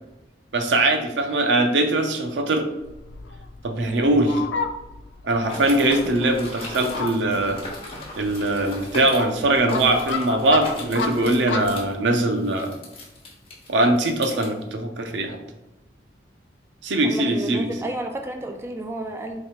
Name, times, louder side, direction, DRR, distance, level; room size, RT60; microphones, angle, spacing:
voice 1, 0.5-2.7 3.6-4.4 5.2-7.6 8.1-12.8 13.7-15.4 16.8-17.7, right 2 dB, 85° right, 5 dB, 0.6 m, -21 dB
Fowl, 2.8-11.8, left 5 dB, 80° left, 0.5 m, -33 dB
sound 1, 5.4-14.5, left 1 dB, 30° left, 1.2 m, -38 dB
voice 2, 17.0-19.4, right 2 dB, 15° right, 4 dB, 0.3 m, -31 dB
3.2 x 3.2 x 4.4 m, 0.99 s
head